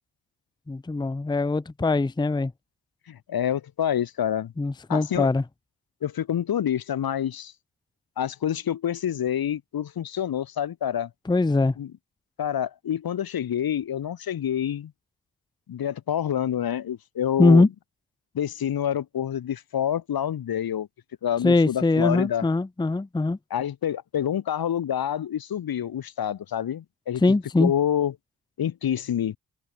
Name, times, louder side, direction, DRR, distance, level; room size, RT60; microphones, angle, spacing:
voice 1, 0.7-2.5 4.6-5.4 11.3-11.7 17.4-17.7 21.4-23.4 27.2-27.7, left 3 dB, 10° left, 0.6 m, -21 dB
voice 2, 3.1-4.5 4.9-5.3 6.0-7.5 8.2-11.1 11.8-11.9 12.4-14.9 15.7-17.7 18.3-20.9 21.2-22.4 23.5-27.2 27.6-28.1 28.6-29.4, left 9 dB, 55° left, 1.0 m, -27 dB
open air
supercardioid pair, 40°, 43 cm